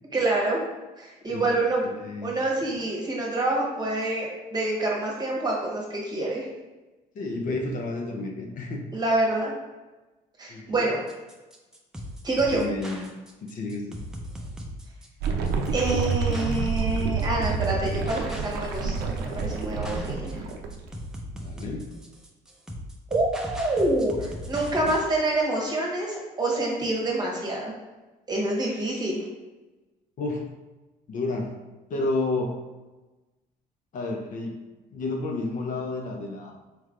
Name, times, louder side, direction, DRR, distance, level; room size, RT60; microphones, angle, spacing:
voice 1, 0.1-0.6 1.0-1.8 2.2-6.5 8.9-9.5 10.4-11.0 12.2-12.6 15.7-20.4 23.1-27.7 28.3-29.2, right 2 dB, 25° right, -3 dB, 1.2 m, -27 dB
voice 2, 1.8-2.3 2.6-2.7 7.1-8.9 10.5-10.9 12.5-13.1 13.4-14.0 21.3-21.9 30.2-30.4 31.1-31.6 31.9-32.6 33.9-34.6 34.9-36.5, left 2 dB, 50° left, 2 dB, 0.6 m, -31 dB
sound 1, 11.1-25.1, equal, 5° right, 0.5 m, -39 dB
sound 2, 15.2-20.9, right 4 dB, 80° right, 0.5 m, -28 dB
4.4 x 3.2 x 2.4 m, 1.1 s
cardioid pair, 110°, 17 cm